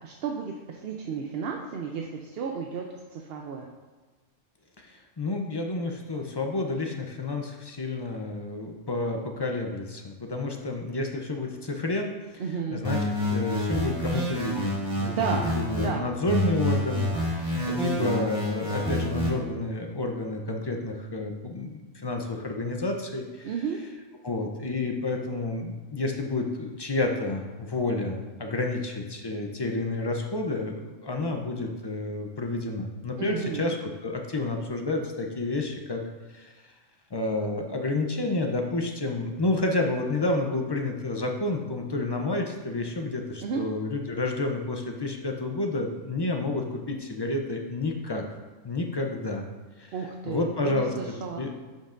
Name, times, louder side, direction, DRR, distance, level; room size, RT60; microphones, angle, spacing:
voice 1, 0.0-3.7 12.4-12.8 15.1-15.5 15.7-16.1 23.4-23.8 33.2-33.7 43.4-43.6 49.9-51.5, right 6 dB, 60° right, 1 dB, 0.7 m, -33 dB
voice 2, 4.8-12.4 12.7-13.0 13.3-23.5 24.2-36.0 36.3-36.5 37.1-48.4 48.6-49.4 49.8-49.9 50.3-50.9 51.3-51.5, left 2 dB, 40° left, 2 dB, 0.3 m, -30 dB
sound 1, 12.8-15.9 16.3-19.3, equal, 5° right, 1.7 m, -28 dB
10.5 x 5.4 x 2.5 m, 1.4 s
omnidirectional pair, 1.3 m